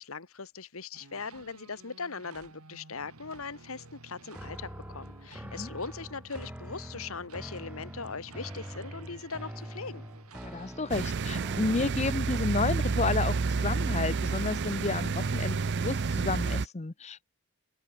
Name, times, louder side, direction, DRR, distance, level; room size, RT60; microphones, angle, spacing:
voice 1, 0.0-10.0, left 4 dB, 70° left, 1.6 m, -40 dB
sound 1, 0.9-15.9, right 3 dB, 90° right, 2.4 m, -53 dB
sound 2, 4.3-12.4, equal, 5° right, 1.4 m, -44 dB
voice 2, 5.4-5.7 10.4-17.3, left 3 dB, 30° left, 0.7 m, -31 dB
sound 3, 10.9-16.7, right 4 dB, 50° right, 0.6 m, -29 dB
open air
head